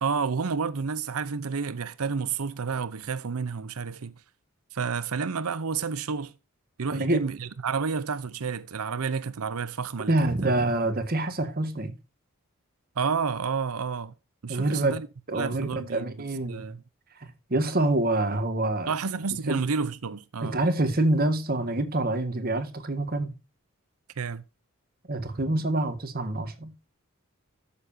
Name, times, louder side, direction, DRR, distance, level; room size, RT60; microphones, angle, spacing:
voice 1, 0.0-4.1 4.7-6.3 6.8-10.5 13.0-14.1 14.4-15.1 15.3-16.1 16.5-16.8 18.9-20.6 24.2-24.4, right 5 dB, 85° right, 0.7 m, -30 dB
voice 2, 10.1-11.9 14.5-14.9 15.3-16.6 17.2-18.9 19.5-19.6 20.4-23.3 25.1-26.7, right 2 dB, 45° right, 1.6 m, -26 dB
12.5 x 7.0 x 2.7 m
head